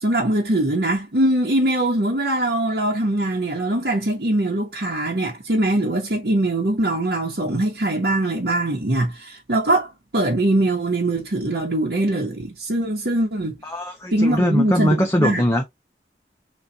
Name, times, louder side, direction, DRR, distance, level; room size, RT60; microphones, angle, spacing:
voice 1, 0.0-13.6 14.1-15.4, right 1 dB, 65° right, 1.2 m, -22 dB
voice 2, 13.6-15.6, equal, 15° left, 0.6 m, -21 dB
6.1 x 2.6 x 2.8 m
head